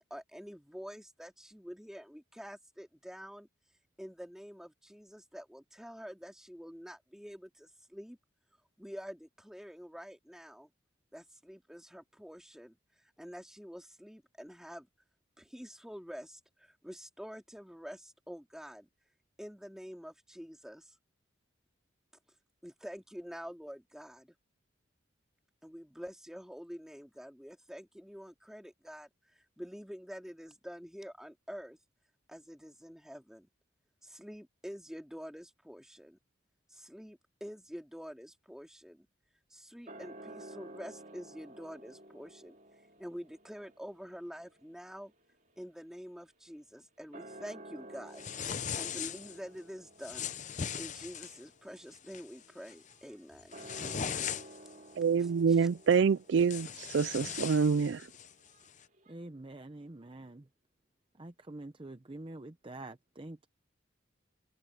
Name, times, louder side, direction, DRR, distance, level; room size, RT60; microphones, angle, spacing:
voice 1, 0.0-3.5 4.0-8.2 8.8-10.7 11.1-12.8 13.2-14.9 15.4-18.9 19.4-20.9 22.6-24.3 25.6-29.1 29.3-31.8 32.3-33.5 34.0-36.2 36.7-39.1 39.5-42.5 43.0-45.1 45.6-48.2 48.7-50.3 50.8-53.7 55.2-55.7, equal, 5° right, 3.1 m, -47 dB
sound 1, 39.9-46.5 47.0-59.1, right 1 dB, 40° right, 3.2 m, -53 dB
sound 2, 48.2-49.4 50.0-51.4 51.9-52.2 52.7-52.9 53.3-54.7 55.9-56.0 56.4-58.3, left 8 dB, 40° left, 0.6 m, -39 dB
voice 2, 55.0-58.0, right 6 dB, 60° right, 0.4 m, -26 dB
voice 3, 59.1-60.5 61.2-63.5, right 2 dB, 25° right, 0.7 m, -46 dB
head